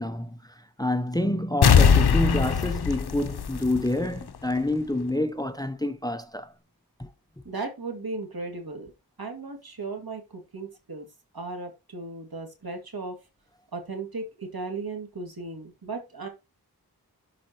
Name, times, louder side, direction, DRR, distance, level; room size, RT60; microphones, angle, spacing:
voice 1, 0.0-6.5 7.0-7.1, left 1 dB, 10° left, 0.7 m, -28 dB
sound 1, 1.6-4.2 4.6-4.7, left 7 dB, 85° left, 0.6 m, -20 dB
voice 2, 7.4-8.9 9.2-11.1 11.3-13.2 13.7-16.3, right 3 dB, 70° right, 2.3 m, -36 dB
12.0 x 4.3 x 3.0 m
wide cardioid pair, 50°, 38 cm